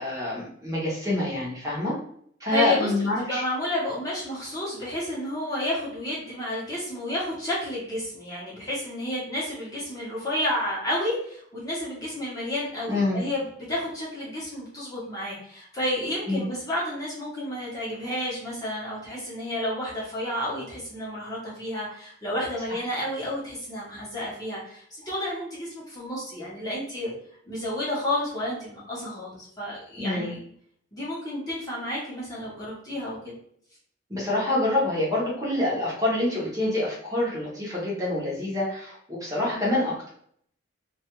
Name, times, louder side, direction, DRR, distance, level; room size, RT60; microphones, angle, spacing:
voice 1, 0.0-1.9 2.4-3.4 12.9-13.2 16.3-16.4 30.0-30.3 34.1-40.1, left 1 dB, 15° right, -6 dB, 0.7 m, -26 dB
voice 2, 2.5-2.9 3.2-27.1 27.5-30.4 30.9-33.3, left 1 dB, 20° left, -6 dB, 0.8 m, -31 dB
2.2 x 2.2 x 2.8 m, 0.65 s
head